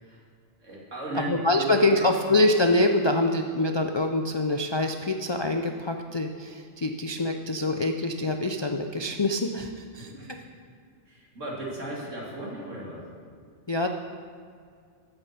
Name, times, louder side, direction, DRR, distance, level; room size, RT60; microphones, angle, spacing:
voice 1, 0.6-2.0 10.0-10.5 11.1-13.0, right 1 dB, 70° right, -4 dB, 2.9 m, -36 dB
voice 2, 1.3-10.4 13.7-13.9, left 2 dB, 45° left, 4 dB, 0.3 m, -25 dB
13.5 x 8.9 x 4.3 m, 2.2 s
omnidirectional pair, 1.3 m